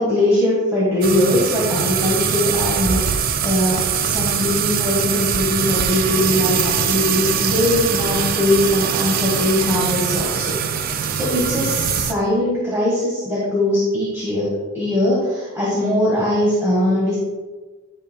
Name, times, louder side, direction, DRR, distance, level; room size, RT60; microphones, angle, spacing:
voice 1, 0.0-10.5 11.1-17.1, left 1 dB, 10° right, -7 dB, 1.5 m, -20 dB
sound 1, 1.0-12.1, right 7 dB, 40° right, 0.3 m, -22 dB
11.0 x 5.3 x 2.3 m, 1.3 s
head